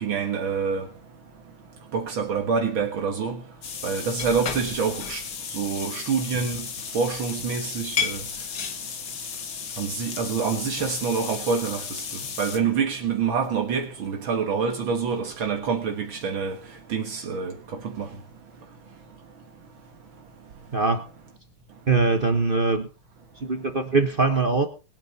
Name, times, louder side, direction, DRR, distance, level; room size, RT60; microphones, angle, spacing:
voice 1, 0.0-0.9 1.9-3.4 3.8-5.2 5.5-6.7 6.9-8.2 9.8-12.0 12.4-16.6 16.9-18.1, right 6 dB, 65° right, 2.2 m, -26 dB
sound 1, 3.6-12.6, left 7 dB, 55° left, 1.9 m, -33 dB
voice 2, 20.7-21.0 21.9-22.9 23.4-24.7, right 4 dB, 35° right, 0.9 m, -22 dB
21.5 x 9.1 x 4.1 m
omnidirectional pair, 2.4 m